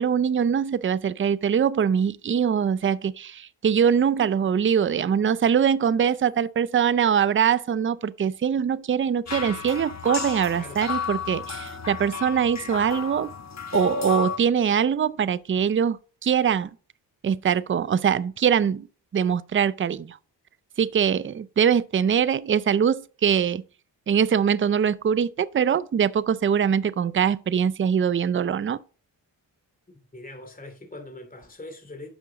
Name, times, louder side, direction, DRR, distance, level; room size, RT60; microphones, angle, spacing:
voice 1, 0.0-13.3 13.7-16.7 17.2-18.9 19.1-20.2 20.8-23.6 24.1-28.8, right 7 dB, 30° right, 0.5 m, -23 dB
Water sound sculpture in botanical garden - Genzano, 9.3-14.4, left 5 dB, 40° left, 1.3 m, -32 dB
voice 2, 30.1-32.1, left 2 dB, 20° left, 2.5 m, -41 dB
10.5 x 6.2 x 3.9 m
cardioid pair, 65°, 44 cm